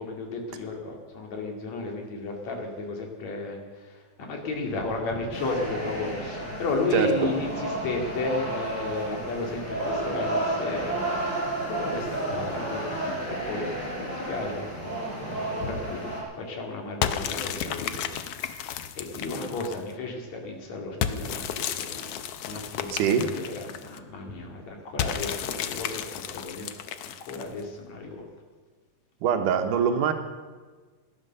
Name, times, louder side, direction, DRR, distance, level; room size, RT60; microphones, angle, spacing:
voice 1, 0.0-11.4 11.7-15.0 15.4-18.1 18.5-22.1 22.4-26.7 27.0-28.3, left 3 dB, 60° left, 1 dB, 3.6 m, -33 dB
sound 1, 5.3-16.2, right 1 dB, 35° left, 4.6 m, -32 dB
sound 2, 17.0-19.9 21.0-24.0 25.0-27.6, left 9 dB, 75° left, 1.3 m, -32 dB
voice 2, 22.9-23.3 29.2-30.1, right 7 dB, 80° right, 7 dB, 2.6 m, -23 dB
16.5 x 11.0 x 6.6 m, 1.4 s
omnidirectional pair, 3.6 m